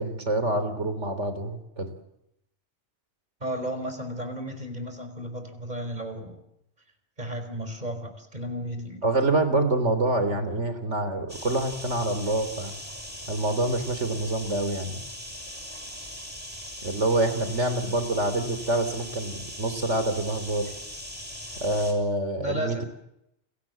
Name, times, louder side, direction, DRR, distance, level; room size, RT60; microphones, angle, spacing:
voice 1, 0.0-1.9 9.0-12.7 13.3-15.0 16.8-20.7 21.6-22.8, right 2 dB, 80° right, 9 dB, 3.9 m, -26 dB
voice 2, 3.4-6.4 7.2-9.0 22.4-22.8, equal, 35° right, 7 dB, 4.9 m, -34 dB
sound 1, 11.3-21.9, equal, 20° left, 6.4 m, -40 dB
29.0 x 22.5 x 7.7 m, 0.81 s
omnidirectional pair, 1.2 m